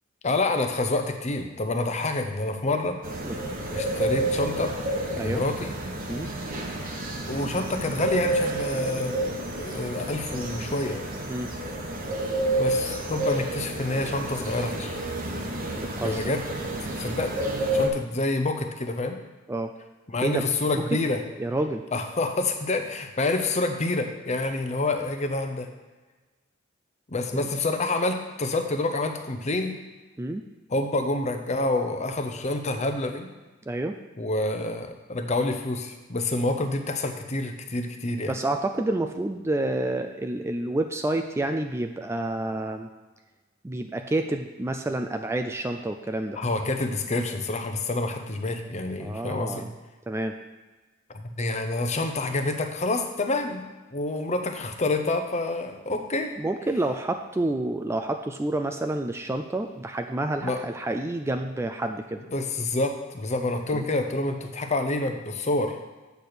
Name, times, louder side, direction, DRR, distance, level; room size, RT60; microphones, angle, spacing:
voice 1, 0.2-3.0 3.7-4.7 5.2-5.7 7.3-9.2 9.6-11.0 12.6-15.0 16.0-16.4 17.0-17.4 17.7-19.2 20.1-21.2 21.9-25.7 27.1-29.8 30.7-33.3 34.2-38.3 46.4-49.7 51.1-53.6 53.9-56.4 60.4-60.6 62.3-65.8, left 2 dB, 35° left, 6 dB, 0.8 m, -27 dB
sound 1, 3.0-17.9, right 1 dB, 45° right, 1.1 m, -30 dB
voice 2, 15.8-16.3 19.5-19.7 20.2-20.8 21.4-21.8 27.3-27.5 30.2-30.4 33.7-34.0 38.3-42.9 43.6-46.4 49.0-49.7 50.1-50.3 56.4-62.2 63.7-63.8, right 2 dB, 15° right, 5 dB, 0.3 m, -29 dB
8.2 x 4.4 x 6.6 m, 1.2 s
head